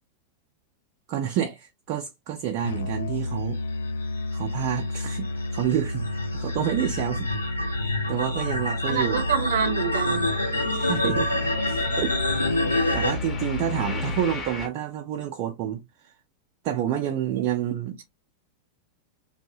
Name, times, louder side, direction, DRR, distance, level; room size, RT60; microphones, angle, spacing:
voice 1, 1.1-3.6 4.3-7.3 7.8-9.2 10.7-11.4 11.7-16.1 16.6-17.9, right 10 dB, 40° right, 0.4 m, -29 dB
Musical instrument, 2.6-14.5, left 1 dB, 65° left, 0.4 m, -31 dB
sound 1, 3.8-13.1, left 2 dB, 85° left, 0.8 m, -28 dB
sound 2, 6.1-8.0 8.2-14.7, left 2 dB, 25° left, 0.8 m, -40 dB
voice 2, 8.9-10.3 17.3-17.5, right 7 dB, 60° right, 0.8 m, -26 dB
2.7 x 2.6 x 2.5 m
figure-of-eight pair, 90°, 0 cm